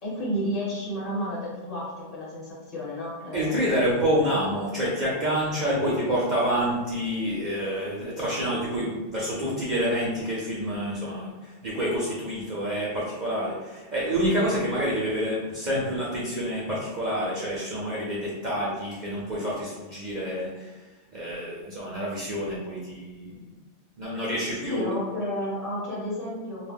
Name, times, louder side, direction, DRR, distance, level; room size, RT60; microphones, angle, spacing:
voice 1, 0.0-3.7 24.6-26.7, equal, 35° left, -8 dB, 1.0 m, -31 dB
voice 2, 3.3-20.8 21.1-23.4 24.0-24.9, equal, 50° right, -6 dB, 0.6 m, -28 dB
2.3 x 2.1 x 3.4 m, 1.2 s
omnidirectional pair, 1.2 m